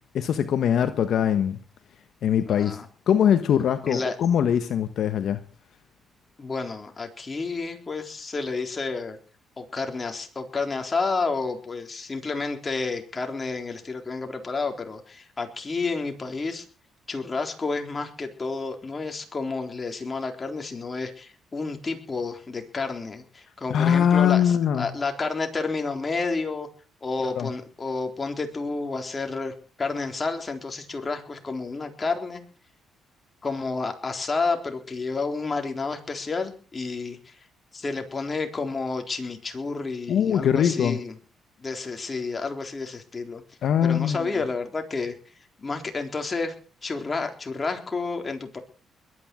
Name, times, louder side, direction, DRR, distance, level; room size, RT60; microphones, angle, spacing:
voice 1, 0.1-1.6 2.2-2.8 3.1-5.4 23.7-24.9 27.2-27.5 40.1-41.0 43.6-44.3, left 9 dB, 70° left, 9 dB, 1.3 m, -22 dB
voice 2, 2.5-2.9 3.9-4.2 6.4-9.2 9.6-16.7 17.1-26.7 27.0-29.5 29.8-32.4 33.4-37.3 37.7-41.1 41.6-43.4 43.8-45.1 45.6-46.5 46.8-48.6, left 4 dB, 30° left, 4 dB, 3.9 m, -30 dB
21.5 x 9.8 x 6.3 m, 0.40 s
cardioid pair, 90°, 0 cm